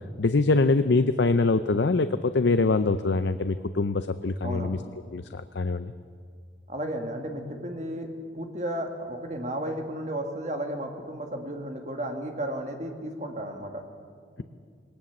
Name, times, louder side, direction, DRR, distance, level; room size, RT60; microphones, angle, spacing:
voice 1, 0.2-4.8 5.1-5.9, left 3 dB, 75° left, 10 dB, 0.6 m, -24 dB
voice 2, 4.4-4.8 6.7-8.1 8.3-13.8 14.4-14.5, right 1 dB, 40° right, 4 dB, 2.2 m, -33 dB
21.0 x 19.0 x 7.3 m, 2.1 s
head